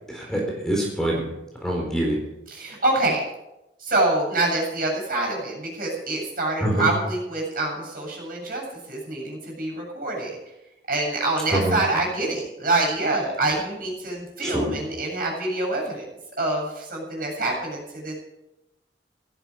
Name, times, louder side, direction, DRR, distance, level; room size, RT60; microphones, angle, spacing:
voice 1, 0.1-1.2 1.6-2.2 6.6-6.9 11.5-11.7 14.4-14.7, right 1 dB, 5° left, -2 dB, 4.1 m, -24 dB
voice 2, 2.5-3.2 3.8-10.4 10.9-16.1 16.4-18.1, right 2 dB, 55° right, 0 dB, 7.9 m, -26 dB
16.5 x 14.0 x 5.0 m, 0.91 s
head